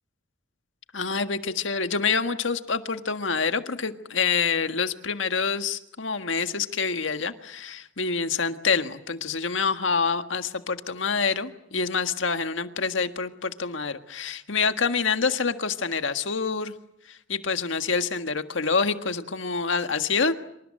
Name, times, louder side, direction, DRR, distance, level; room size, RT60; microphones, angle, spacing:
voice 1, 0.9-16.7 17.1-20.4, left 5 dB, 85° left, 8 dB, 1.6 m, -27 dB
27.0 x 25.0 x 7.7 m, 0.82 s
head